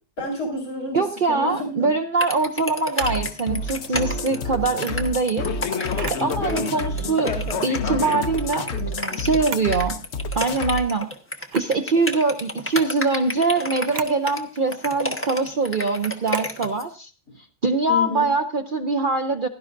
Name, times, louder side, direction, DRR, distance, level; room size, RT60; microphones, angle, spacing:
voice 1, 0.2-1.9 6.2-7.9 8.7-9.3 17.9-18.3, left 1 dB, 75° left, -3 dB, 3.4 m, -31 dB
voice 2, 0.9-5.5 6.1-7.3 7.6-8.7 9.2-10.0 10.3-11.1 11.5-17.1 17.6-19.5, right 3 dB, 50° right, 6 dB, 0.6 m, -23 dB
sound 1, 2.2-16.8, left 1 dB, 10° left, 1.1 m, -30 dB
sound 2, 3.0-10.8, left 3 dB, 55° left, 0.9 m, -29 dB
Camera, 5.9-6.3 8.0-8.4 9.3-9.8 10.2-10.3 11.4-11.8 13.8-14.2 16.2-16.6, right 7 dB, 70° right, 1.2 m, -36 dB
16.5 x 11.5 x 2.6 m, 0.38 s
omnidirectional pair, 1.6 m